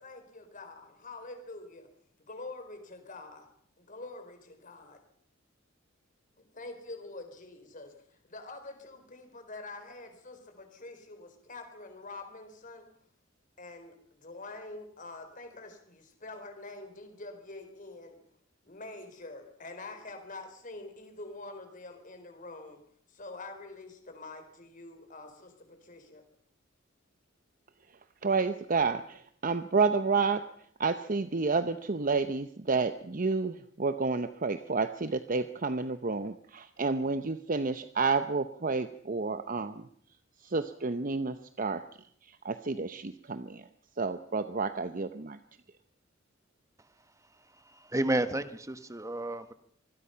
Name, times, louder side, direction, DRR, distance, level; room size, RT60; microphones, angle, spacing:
voice 1, 0.0-1.9 2.2-3.5 3.8-5.0 6.4-12.9 13.6-18.2 18.6-22.8 23.1-26.2, left 2 dB, 40° left, 7 dB, 4.2 m, -46 dB
voice 2, 28.2-30.4 30.8-39.9 40.4-41.8 42.3-43.6 44.0-45.4, right 4 dB, 40° right, 10 dB, 0.8 m, -30 dB
voice 3, 47.6-49.5, right 1 dB, 15° right, 10 dB, 1.4 m, -31 dB
26.0 x 21.0 x 5.8 m, 0.64 s
head